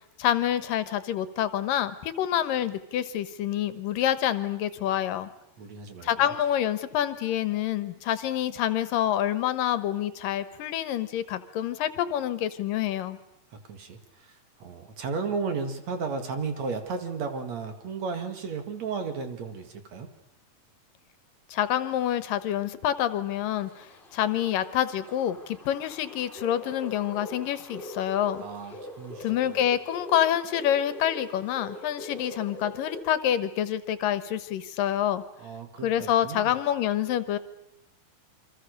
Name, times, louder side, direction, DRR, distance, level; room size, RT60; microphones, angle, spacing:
voice 1, 0.2-5.3 6.0-13.2 21.5-28.4 29.2-35.2 35.8-37.4, left 11 dB, 80° left, 14 dB, 2.8 m, -27 dB
voice 2, 5.6-6.3 13.7-20.1 28.4-29.6 35.4-36.5, right 5 dB, 55° right, 8 dB, 3.1 m, -34 dB
sound 1, 23.5-33.0, left 1 dB, 15° left, 3.7 m, -43 dB
28.5 x 24.5 x 6.6 m, 0.78 s
omnidirectional pair, 4.0 m